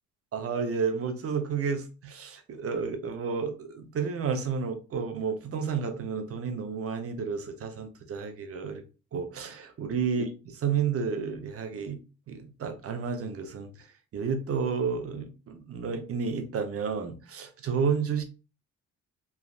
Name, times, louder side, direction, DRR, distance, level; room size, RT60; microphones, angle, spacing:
voice 1, 0.3-8.8 9.1-12.0 12.3-13.9 14.1-18.2, right 6 dB, 50° right, 0.7 m, -31 dB
3.2 x 2.5 x 2.4 m
cardioid pair, 90°, 30 cm